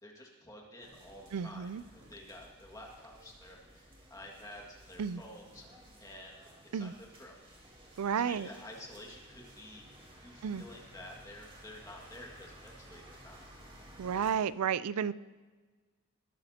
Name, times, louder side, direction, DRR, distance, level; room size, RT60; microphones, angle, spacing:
voice 1, 0.0-5.7 6.0-6.3 6.7-7.4 8.2-9.8 10.2-13.5, left 1 dB, 15° left, -1 dB, 1.9 m, -50 dB
sound 1, 0.8-14.3, right 1 dB, 25° right, 3.4 m, -56 dB
voice 2, 1.3-1.8 5.0-5.2 6.7-6.9 8.0-8.5 10.4-10.6 14.0-15.1, right 7 dB, 75° right, 17 dB, 0.4 m, -32 dB
21.0 x 14.0 x 2.9 m, 1.3 s
head